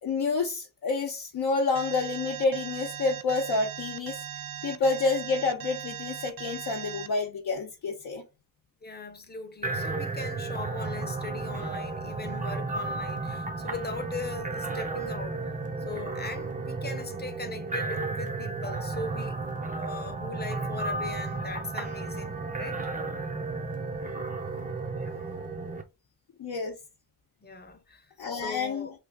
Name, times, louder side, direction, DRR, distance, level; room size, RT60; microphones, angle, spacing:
voice 1, 0.0-4.2 4.6-8.2 26.4-26.8 28.2-28.9, left 3 dB, 65° left, 0.7 m, -28 dB
Alarm, 1.8-7.1, right 10 dB, 65° right, 0.5 m, -39 dB
voice 2, 8.8-15.4 15.9-22.8 27.4-28.9, left 3 dB, 25° left, 0.7 m, -39 dB
sound 1, 9.6-25.8, right 3 dB, 20° right, 0.6 m, -33 dB
3.3 x 2.4 x 3.4 m
wide cardioid pair, 100°, 40 cm